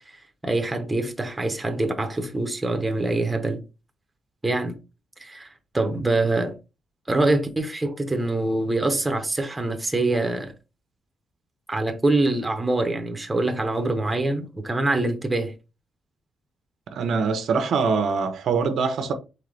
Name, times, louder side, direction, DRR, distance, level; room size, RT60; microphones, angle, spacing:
voice 1, 0.4-3.6 4.4-4.8 5.2-5.5 5.7-6.5 7.1-10.5 11.7-15.5, right 2 dB, 10° right, 0.8 m, -24 dB
voice 2, 16.9-19.1, right 5 dB, 65° right, 0.7 m, -23 dB
3.9 x 3.9 x 3.3 m
wide cardioid pair, 160°, 0 cm